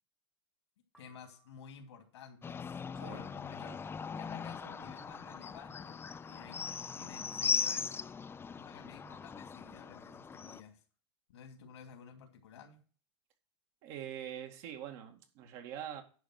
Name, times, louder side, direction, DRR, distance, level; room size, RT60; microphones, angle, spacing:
sound 1, 0.9-2.2, right 8 dB, ahead, 1.3 m, -68 dB
voice 1, 1.0-3.8 4.2-7.9 8.6-10.8 11.3-12.8, left 6 dB, 80° left, 2.6 m, -53 dB
sound 2, 2.4-10.6, left 6 dB, 15° left, 0.5 m, -39 dB
voice 2, 13.8-16.0, right 10 dB, 55° right, 2.1 m, -44 dB
10.5 x 5.3 x 6.1 m
hypercardioid pair, 110°, 14 cm